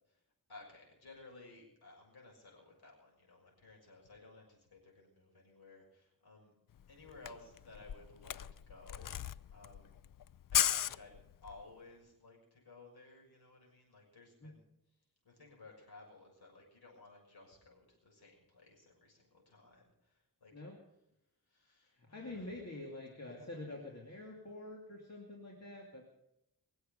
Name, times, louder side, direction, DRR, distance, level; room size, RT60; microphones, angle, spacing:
voice 1, 0.5-6.5 6.9-9.9 10.5-11.1 11.4-14.6 15.2-20.5 21.5-22.9 23.2-24.0, left 3 dB, 85° left, -1 dB, 6.6 m, -57 dB
Camera, 6.8-6.9 7.1-11.6, left 10 dB, 60° left, 0.5 m, -35 dB
voice 2, 22.0-26.1, left 2 dB, 45° left, 0 dB, 2.5 m, -47 dB
24.0 x 8.0 x 6.8 m, 0.85 s
wide cardioid pair, 95°, 37 cm